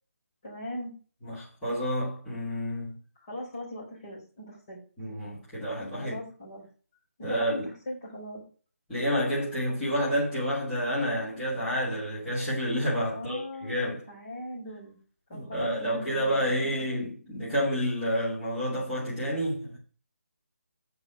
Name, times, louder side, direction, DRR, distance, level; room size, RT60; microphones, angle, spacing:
voice 1, 0.4-0.9 3.2-4.8 6.0-6.7 7.2-8.4 13.1-15.0 15.3-17.0, left 1 dB, 25° left, 4.1 m, -40 dB
voice 2, 1.2-3.0 5.0-6.1 7.2-7.7 8.9-14.0 15.3-19.8, equal, 5° left, 2.6 m, -29 dB
7.9 x 5.6 x 6.2 m
hypercardioid pair, 175°, 8 cm